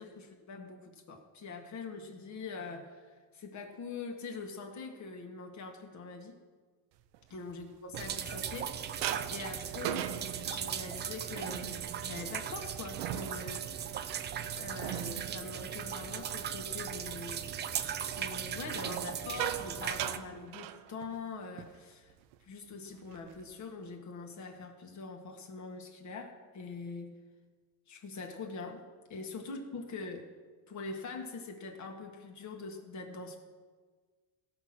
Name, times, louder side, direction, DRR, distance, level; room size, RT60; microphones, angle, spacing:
voice 1, 0.0-6.4 7.3-13.8 14.5-17.4 18.1-22.1 22.4-27.1 27.9-28.8 29.1-30.2 30.7-33.4, left 4 dB, 40° left, 3 dB, 1.8 m, -43 dB
sound 1, 7.1-8.6 9.0-16.8 17.2-17.5 18.7-21.3 21.6-21.8 22.1-22.4 22.9-23.5, right 12 dB, 70° right, 0.8 m, -41 dB
sound 2, 7.9-20.2, right 9 dB, 25° right, 0.4 m, -38 dB
16.5 x 6.2 x 5.9 m, 1.5 s
cardioid pair, 135°, 45 cm